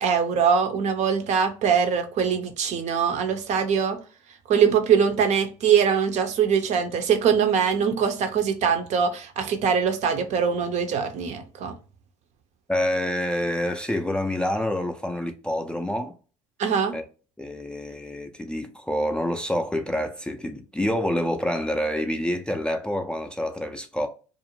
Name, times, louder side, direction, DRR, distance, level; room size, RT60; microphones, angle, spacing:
voice 1, 0.0-4.0 4.5-11.7 16.6-17.0, right 7 dB, 50° right, 0.6 m, -22 dB
voice 2, 12.7-16.1 16.9-17.0 17.4-24.1, left 1 dB, 5° left, 0.3 m, -27 dB
2.5 x 2.0 x 2.9 m
hypercardioid pair, 75°, 15 cm